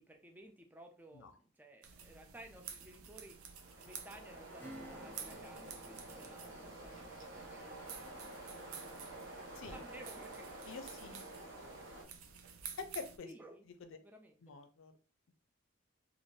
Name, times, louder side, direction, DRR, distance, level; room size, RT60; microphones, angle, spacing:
voice 1, 0.0-3.4 3.8-7.9 8.2-10.5 13.2-13.7 14.0-14.4, right 1 dB, 10° right, 3 dB, 0.4 m, -56 dB
sound 1, 1.8-13.2, right 6 dB, 85° right, 0.5 m, -52 dB
sound 2, 3.3-12.0, right 1 dB, 60° right, 0.9 m, -50 dB
Acoustic guitar / Strum, 4.6-10.8 11.2-11.3, equal, 10° left, 0.7 m, -57 dB
voice 2, 10.7-11.2 12.8-13.3 14.4-14.9, left 5 dB, 65° left, 8 dB, 0.5 m, -46 dB
2.6 x 2.5 x 3.1 m, 0.36 s
head